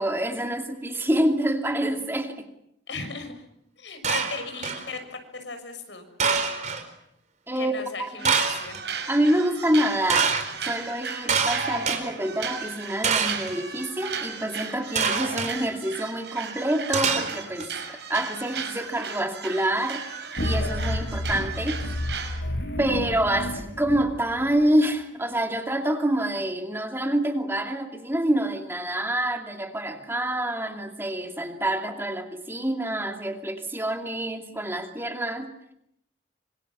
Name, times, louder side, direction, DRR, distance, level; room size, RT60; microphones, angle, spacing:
voice 1, 0.0-2.4 7.5-7.7 8.0-8.3 9.1-22.0 22.8-35.5, right 1 dB, 15° right, 4 dB, 2.6 m, -27 dB
voice 2, 2.9-3.3 3.8-6.1 7.5-8.8, left 4 dB, 85° left, 7 dB, 6.3 m, -36 dB
sound 1, 4.0-4.9 6.2-6.8 8.2-8.8 10.1-10.5 11.3-12.0 13.0-13.5 15.0-15.5 16.9-17.7, right 5 dB, 40° right, 4.3 m, -25 dB
sound 2, 8.2-8.4 8.7-22.4, right 5 dB, 70° right, 5.9 m, -36 dB
sound 3, 20.4-24.5, left 1 dB, 70° left, 6.5 m, -30 dB
27.0 x 26.0 x 7.4 m, 0.74 s
head